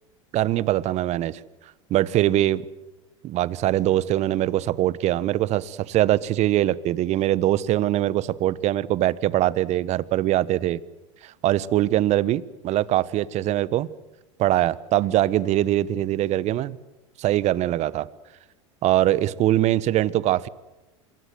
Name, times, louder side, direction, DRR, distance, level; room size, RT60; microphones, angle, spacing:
voice 1, 0.3-1.4 1.9-2.6 3.2-10.8 11.2-13.9 14.4-16.8 17.2-18.1 18.8-20.5, right 14 dB, 45° right, 20 dB, 1.1 m, -22 dB
27.0 x 22.0 x 7.7 m, 1.0 s
hypercardioid pair, 90°, 16 cm